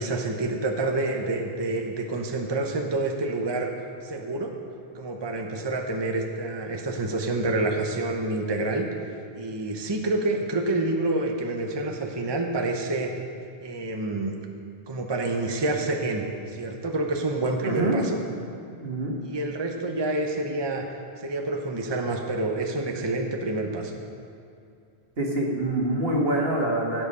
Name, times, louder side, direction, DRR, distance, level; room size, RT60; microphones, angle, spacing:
voice 1, 0.0-3.7 4.0-4.5 4.9-8.9 9.4-13.1 13.6-14.3 14.9-18.2 19.2-20.8 21.2-24.0, right 2 dB, 25° right, 2 dB, 0.9 m, -28 dB
voice 2, 17.6-17.9 18.8-19.1 25.2-27.1, right 1 dB, 70° right, -2 dB, 2.1 m, -25 dB
16.5 x 7.8 x 5.5 m, 2.5 s
omnidirectional pair, 1.0 m